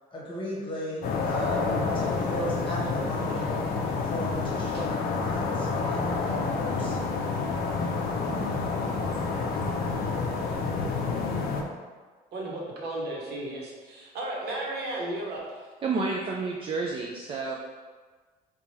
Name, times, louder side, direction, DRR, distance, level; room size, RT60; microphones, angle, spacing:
voice 1, 0.1-1.7 1.9-3.5 4.0-7.0 9.1-9.2, left 1 dB, 30° left, -5 dB, 1.1 m, -36 dB
sound 1, 1.0-11.6, left 4 dB, 60° left, 0.5 m, -28 dB
voice 2, 12.3-15.7, right 1 dB, 75° right, -3 dB, 0.9 m, -34 dB
voice 3, 15.8-17.5, right 4 dB, 35° right, -1 dB, 0.3 m, -30 dB
3.0 x 2.3 x 4.0 m, 1.4 s
cardioid pair, 110°, 17 cm